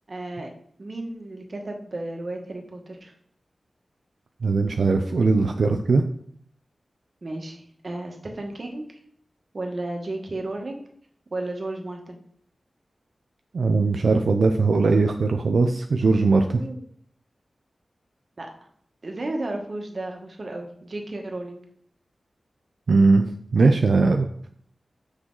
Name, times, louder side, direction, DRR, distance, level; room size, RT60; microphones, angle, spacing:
voice 1, 0.1-0.5 0.8-3.1 7.2-8.9 9.5-10.8 11.3-12.2 16.5-16.8 18.4-18.5 19.0-21.6, right 2 dB, 50° right, 3 dB, 1.3 m, -33 dB
voice 2, 4.4-6.0 13.5-16.6 22.9-23.2 23.5-24.5, right 3 dB, 80° right, 5 dB, 0.5 m, -20 dB
6.3 x 6.2 x 3.9 m, 0.63 s
wide cardioid pair, 105°, 0 cm